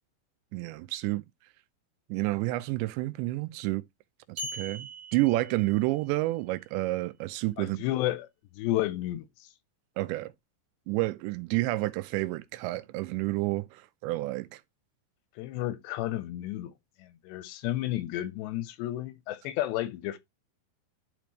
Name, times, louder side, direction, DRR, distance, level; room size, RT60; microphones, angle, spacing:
voice 1, 0.5-1.2 2.1-3.8 4.3-7.8 10.0-10.3 10.9-14.6, right 19 dB, 90° right, 3.0 m, -30 dB
sound 1, 4.4-6.2, right 1 dB, 30° right, 2.4 m, -41 dB
voice 2, 7.6-8.3 8.5-9.5 15.4-16.7 17.0-20.2, left 14 dB, 85° left, 2.9 m, -32 dB
11.5 x 5.1 x 3.1 m
omnidirectional pair, 5.1 m